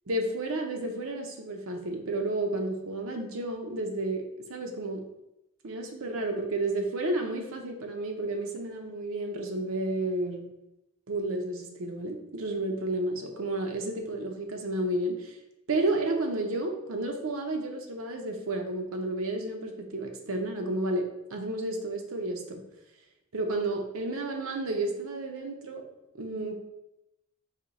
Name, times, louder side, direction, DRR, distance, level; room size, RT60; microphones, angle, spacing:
voice 1, 0.1-4.2 4.5-5.0 5.6-10.5 11.1-15.4 15.7-21.0 21.3-22.6 23.3-25.8 26.1-26.5, right 2 dB, 65° right, 3 dB, 0.7 m, -31 dB
4.4 x 2.7 x 3.9 m, 0.89 s
head